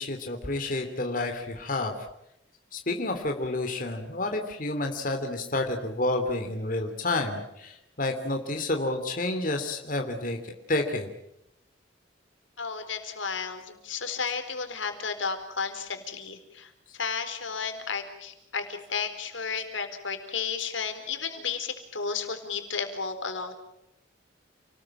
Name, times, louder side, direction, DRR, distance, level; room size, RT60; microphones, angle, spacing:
voice 1, 0.0-1.9 2.7-11.1, left 2 dB, 45° left, 4 dB, 3.0 m, -30 dB
voice 2, 12.6-23.5, left 5 dB, 85° left, 8 dB, 4.2 m, -33 dB
29.5 x 20.0 x 8.9 m, 0.82 s
head